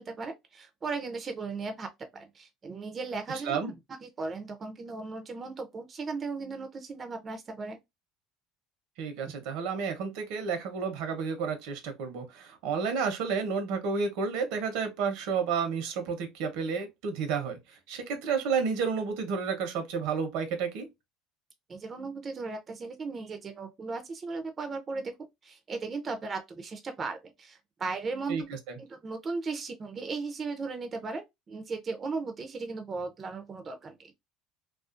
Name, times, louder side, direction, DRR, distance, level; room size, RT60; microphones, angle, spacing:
voice 1, 0.0-1.9 2.1-7.8 21.7-25.1 25.4-28.5 28.8-34.1, right 4 dB, 30° right, 0.4 m, -37 dB
voice 2, 9.0-20.9 28.3-28.8, right 5 dB, 80° right, 0.8 m, -31 dB
2.4 x 2.4 x 2.4 m
cardioid pair, 125°, 0 cm